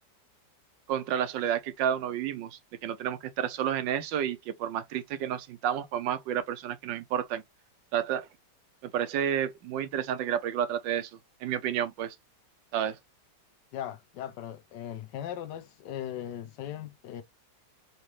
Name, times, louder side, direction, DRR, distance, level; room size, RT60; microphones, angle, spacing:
voice 1, 0.9-7.4 7.9-8.3 8.8-11.1 11.4-12.2 12.7-13.0, right 9 dB, 85° right, 1.4 m, -30 dB
voice 2, 13.7-17.2, left 10 dB, 80° left, 1.3 m, -38 dB
4.1 x 3.3 x 3.1 m
omnidirectional pair, 1.9 m